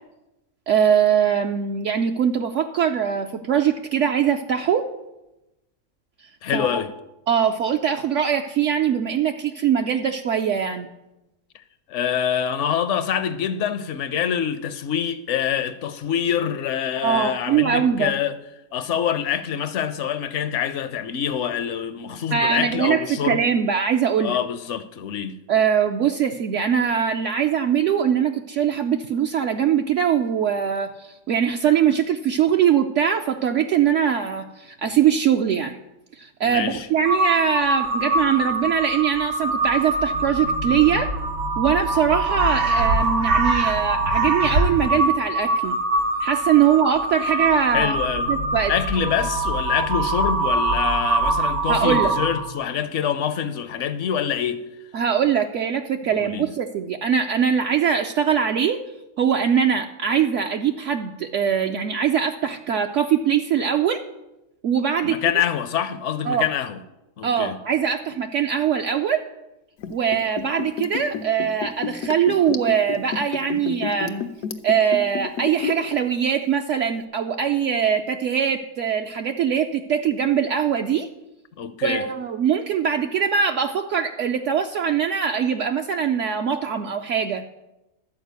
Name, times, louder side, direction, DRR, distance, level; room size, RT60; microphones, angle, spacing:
voice 1, 0.7-4.9 6.5-6.8 7.3-10.9 17.0-18.1 22.3-24.4 25.5-35.8 36.1-41.1 41.6-45.8 46.2-47.9 48.3-48.7 51.7-52.1 54.9-58.8 59.2-64.0 64.6-65.2 66.3-66.4 67.2-69.2 69.9-74.3 74.6-81.1 81.8-87.4, right 8 dB, 65° right, 0.8 m, -22 dB
voice 2, 6.4-6.9 11.9-18.4 18.7-23.4 24.2-25.4 36.4-36.9 47.3-48.3 48.7-54.6 56.1-56.5 65.0-66.8 67.2-67.6 81.6-82.0, left 8 dB, 65° left, 0.8 m, -25 dB
Crow, 37.1-52.6, right 2 dB, 80° right, 1.6 m, -23 dB
Liquid, 69.8-76.0 76.2-76.3, left 7 dB, 90° left, 1.1 m, -30 dB
12.0 x 4.8 x 8.0 m
omnidirectional pair, 1.5 m